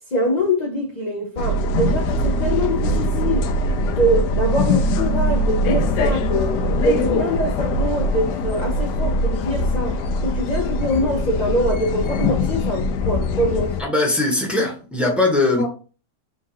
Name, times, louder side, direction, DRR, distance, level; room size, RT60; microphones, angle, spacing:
voice 1, 0.1-3.5 3.9-13.9 15.6-15.7, equal, 60° left, 0.4 m, -24 dB
sound 1, 1.4-13.8, left 1 dB, 90° left, 1.2 m, -22 dB
Bass guitar, 4.8-11.1, left 5 dB, 85° right, 1.2 m, -37 dB
voice 2, 13.8-15.7, left 2 dB, ahead, 0.8 m, -20 dB
4.4 x 2.4 x 4.3 m
omnidirectional pair, 1.7 m